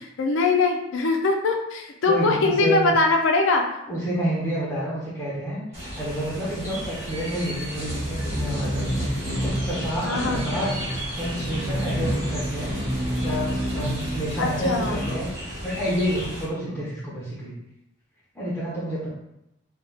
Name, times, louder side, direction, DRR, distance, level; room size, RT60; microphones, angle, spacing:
voice 1, 0.2-3.6 10.0-10.4 14.4-15.0, left 3 dB, 65° left, 2 dB, 0.4 m, -22 dB
voice 2, 2.1-2.9 3.9-5.6 6.0-8.9 9.3-12.7 13.2-17.5 18.3-19.1, equal, 5° left, -9 dB, 0.6 m, -29 dB
sound 1, 5.7-16.4, equal, 35° right, 1.1 m, -29 dB
2.2 x 2.2 x 3.2 m, 0.84 s
head